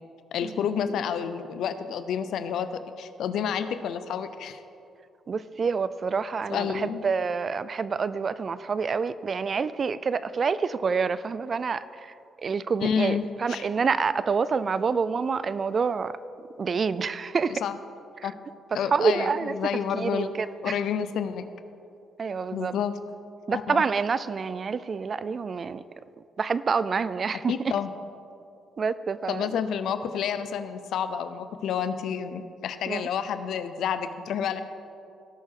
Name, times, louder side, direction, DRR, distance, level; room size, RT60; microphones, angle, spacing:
voice 1, 0.3-2.7 3.0-4.6 6.5-7.0 12.8-13.2 13.5-13.6 17.5-17.8 18.2-18.3 18.7-20.3 20.6-21.5 22.5-22.9 23.5-23.8 27.5-27.9 29.3-34.6, left 8 dB, 75° left, 11 dB, 0.6 m, -29 dB
voice 2, 5.3-16.1 16.6-17.6 18.2-18.3 18.9-19.5 19.9-20.8 22.2-22.7 23.5-25.8 26.4-27.7 28.8-29.5 32.9-33.1, right 5 dB, 40° right, 15 dB, 0.4 m, -27 dB
17.5 x 6.3 x 3.7 m, 2.6 s
cardioid pair, 90°, 0 cm